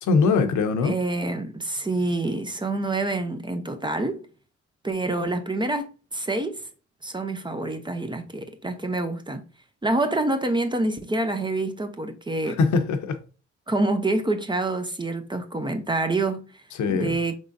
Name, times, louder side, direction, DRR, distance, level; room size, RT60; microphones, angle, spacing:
voice 1, 0.1-1.0 12.5-13.2 16.7-17.2, left 4 dB, 70° left, 0.8 m, -22 dB
voice 2, 0.8-4.3 4.8-6.7 7.0-9.4 9.8-12.6 13.7-16.6 16.9-17.3, right 2 dB, 15° right, 0.6 m, -27 dB
4.8 x 3.7 x 2.6 m
cardioid pair, 90°, 30 cm